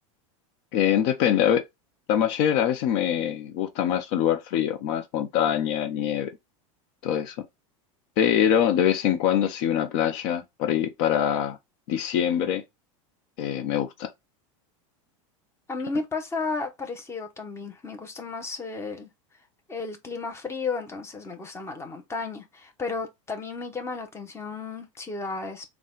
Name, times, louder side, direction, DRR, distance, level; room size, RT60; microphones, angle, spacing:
voice 1, 0.7-1.6 2.1-6.3 7.0-7.4 8.2-11.6 11.9-12.6 13.4-14.1, left 9 dB, 60° left, 0.7 m, -24 dB
voice 2, 15.7-19.1 19.7-25.6, left 4 dB, 15° left, 1.0 m, -33 dB
4.0 x 2.4 x 3.7 m
supercardioid pair, 115°, 17 cm